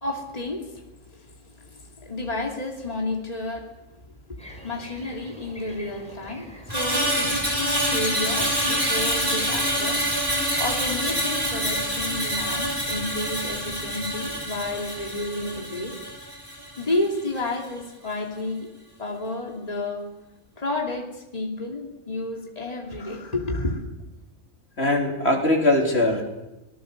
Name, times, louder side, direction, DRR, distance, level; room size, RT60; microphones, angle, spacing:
voice 1, 0.0-3.7 4.1-10.0 10.6-16.0 16.8-18.7 19.0-20.1 20.6-23.8, left 2 dB, 30° left, 0 dB, 3.0 m, -31 dB
sound 1, 4.4-12.0, equal, 5° left, 6.0 m, -40 dB
Screech, 6.7-17.1 17.4-17.7, equal, 15° right, 5.7 m, -26 dB
voice 2, 24.8-26.2, left 1 dB, 50° left, 0 dB, 4.0 m, -21 dB
26.5 x 18.5 x 6.7 m, 0.99 s
omnidirectional pair, 1.4 m